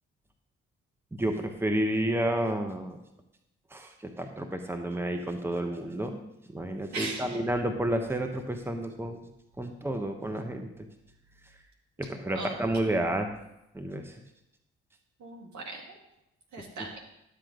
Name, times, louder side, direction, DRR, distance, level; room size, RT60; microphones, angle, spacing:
voice 1, 1.2-3.0 3.7-6.2 6.5-9.2 9.6-10.7 12.0-13.3 13.7-14.1, right 1 dB, 5° right, 5 dB, 1.3 m, -30 dB
voice 2, 6.9-7.4 12.3-12.9 15.2-16.0 16.5-17.0, right 3 dB, 60° right, 0 dB, 2.3 m, -39 dB
11.5 x 7.7 x 3.9 m, 0.85 s
hypercardioid pair, 45°, 32 cm